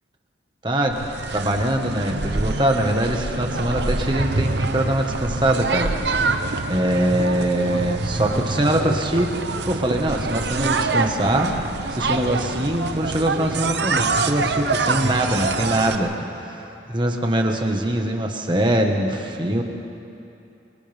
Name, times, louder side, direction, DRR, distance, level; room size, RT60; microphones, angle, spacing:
voice 1, 0.6-1.0 1.3-5.9 6.7-9.3 9.6-11.5 11.9-16.6 16.9-19.6, right 1 dB, 25° right, 2 dB, 1.6 m, -23 dB
sound 1, 0.9-16.0, right 3 dB, 65° right, 0.9 m, -25 dB
29.5 x 24.5 x 3.6 m, 2.8 s
head